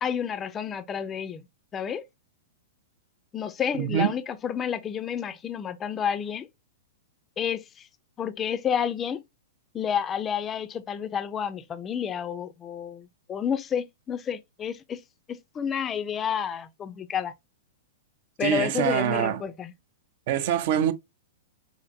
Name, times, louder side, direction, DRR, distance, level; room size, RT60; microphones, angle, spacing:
voice 1, 0.0-1.4 1.7-2.0 3.3-6.5 7.4-7.9 8.2-9.2 9.7-15.0 15.3-17.3 18.4-19.7, left 8 dB, 25° left, 0.4 m, -30 dB
voice 2, 3.8-4.1 18.4-19.4 20.3-20.9, right 9 dB, 55° right, 0.5 m, -24 dB
4.2 x 2.5 x 2.5 m
hypercardioid pair, 115°, 0 cm